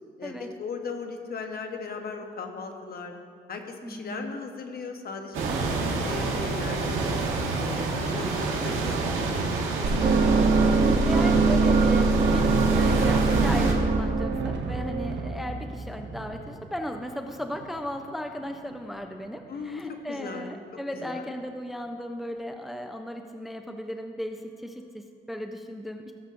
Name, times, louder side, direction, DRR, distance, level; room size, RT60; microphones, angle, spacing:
voice 1, 0.2-3.1 3.5-7.2 7.6-9.0 9.4-10.5 19.5-20.5 20.9-21.3, left 4 dB, 50° left, 4 dB, 1.1 m, -37 dB
voice 2, 3.8-4.4 10.8-26.1, equal, ahead, 5 dB, 0.5 m, -36 dB
sound 1, 5.3-13.7, right 3 dB, 85° right, 1.7 m, -28 dB
sound 2, 9.8-15.9, right 3 dB, 45° right, 0.8 m, -23 dB
sound 3, 14.3-20.3 20.7-21.7, right 4 dB, 65° right, 1.1 m, -42 dB
16.5 x 7.1 x 2.6 m, 2.2 s
cardioid pair, 90°, 20 cm